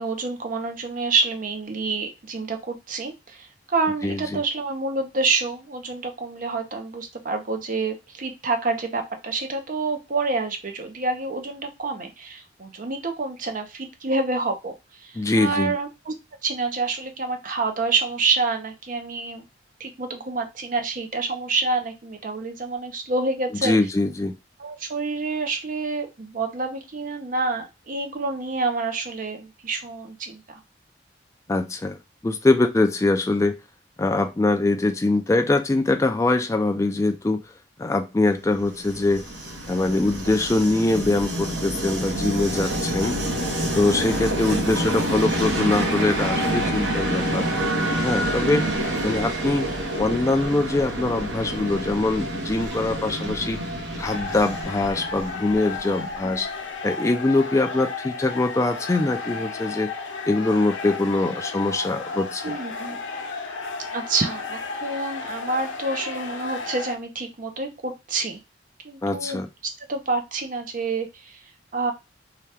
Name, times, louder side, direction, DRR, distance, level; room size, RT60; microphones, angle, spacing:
voice 1, 0.0-16.1 16.4-19.4 19.8-23.8 24.6-30.6 43.6-43.9 48.8-48.9 56.2-56.3 62.4-63.0 63.9-68.4 68.8-71.4 71.7-71.9, right 3 dB, 45° right, 0.6 m, -28 dB
voice 2, 4.0-4.4 15.2-15.7 23.6-24.3 31.5-32.0 32.2-33.6 34.0-37.4 37.8-39.2 39.7-43.2 43.8-47.5 48.0-48.7 49.0-49.7 50.0-53.6 54.0-56.5 56.8-59.9 60.3-62.6 69.0-69.5, left 2 dB, 15° left, 0.3 m, -23 dB
Train, 38.5-56.3, right 1 dB, 65° right, 0.9 m, -27 dB
sound 1, 54.0-67.0, left 4 dB, 85° left, 0.7 m, -33 dB
2.8 x 2.3 x 3.3 m
head